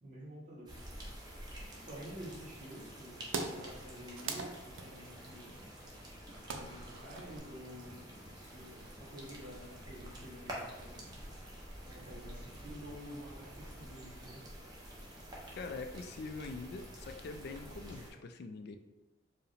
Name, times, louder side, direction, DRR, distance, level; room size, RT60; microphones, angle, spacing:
voice 1, 0.0-0.8 1.7-5.7 6.5-11.3 11.9-14.4, equal, 40° right, -4 dB, 1.0 m, -50 dB
sound 1, 0.7-18.1, equal, 20° right, 0.6 m, -49 dB
sound 2, 1.8-2.3 2.9-3.0 3.2-7.4, right 4 dB, 90° right, 0.4 m, -43 dB
voice 2, 15.5-18.8, left 3 dB, 55° left, 7 dB, 0.3 m, -44 dB
4.5 x 2.1 x 3.2 m, 1.1 s
head